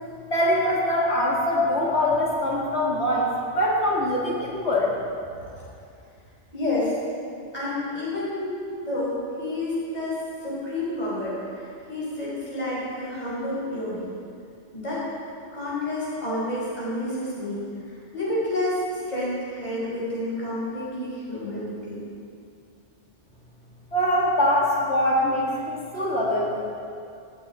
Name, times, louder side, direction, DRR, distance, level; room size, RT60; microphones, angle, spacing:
voice 1, 0.3-3.3 3.6-4.9 23.9-26.7, left 1 dB, 65° left, -4 dB, 2.3 m, -23 dB
voice 2, 6.5-6.9 7.5-8.5 8.8-14.1 14.7-15.0 15.5-17.6 18.1-22.0, left 1 dB, 35° left, -8 dB, 4.7 m, -29 dB
16.5 x 15.5 x 4.2 m, 2.4 s
omnidirectional pair, 1.2 m